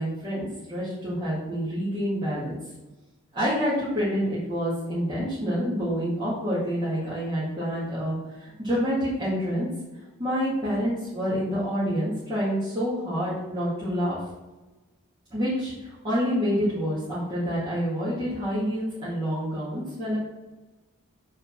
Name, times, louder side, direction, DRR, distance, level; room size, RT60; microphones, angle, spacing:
voice 1, 0.0-2.6 3.3-9.7 10.2-14.2 15.3-20.2, equal, 20° right, -12 dB, 2.1 m, -27 dB
7.3 x 4.3 x 5.9 m, 1.1 s
head